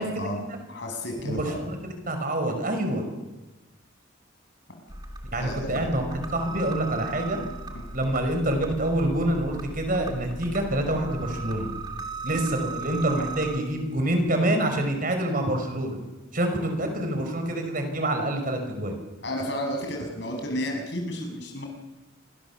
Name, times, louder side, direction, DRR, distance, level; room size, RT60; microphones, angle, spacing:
voice 1, 0.0-1.6 5.4-6.0 7.7-7.9 19.2-21.7, left 1 dB, 60° left, 3 dB, 6.4 m, -32 dB
voice 2, 1.2-1.8 2.1-3.0 5.3-7.5 7.9-11.7 12.2-16.0 16.3-19.0, right 1 dB, 45° right, 5 dB, 5.4 m, -26 dB
sound 1, 4.9-13.6, right 3 dB, 20° right, 2.7 m, -37 dB
27.5 x 24.0 x 7.3 m, 1.1 s
head